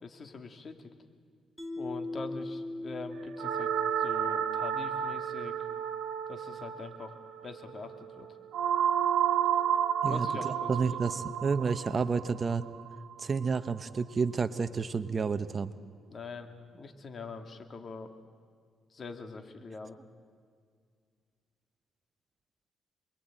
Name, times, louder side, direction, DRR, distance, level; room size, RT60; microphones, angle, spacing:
voice 1, 0.0-0.8 1.8-3.7 4.0-5.5 6.3-7.1 7.4-8.3 10.1-10.7 11.0-11.1 16.1-18.1 18.9-20.0, left 4 dB, 40° left, 6 dB, 2.5 m, -43 dB
Mallet percussion, 1.6-4.8, left 2 dB, ahead, 2.6 m, -40 dB
sound 1, 3.4-13.6, right 9 dB, 80° right, 1.3 m, -31 dB
voice 2, 10.0-12.6 13.2-15.7, right 5 dB, 35° right, 12 dB, 0.9 m, -30 dB
28.0 x 22.0 x 9.0 m, 2.1 s
cardioid pair, 110°, 0 cm